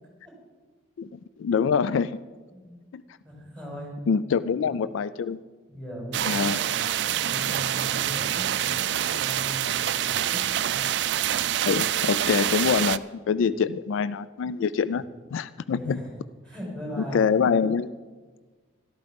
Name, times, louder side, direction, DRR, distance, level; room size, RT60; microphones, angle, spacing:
voice 1, 1.0-2.2 2.9-3.0 4.1-5.4 6.3-6.6 11.6-15.0 15.3-16.0 17.1-17.9, left 6 dB, 75° left, 16 dB, 0.3 m, -25 dB
voice 2, 3.2-3.9 4.3-4.6 5.7-10.9 13.4-13.5 15.6-16.1 16.4-17.3, equal, 5° left, -4 dB, 5.3 m, -39 dB
sound 1, 6.1-13.0, right 11 dB, 60° right, 0.4 m, -26 dB
13.0 x 12.5 x 5.2 m, 1.4 s
head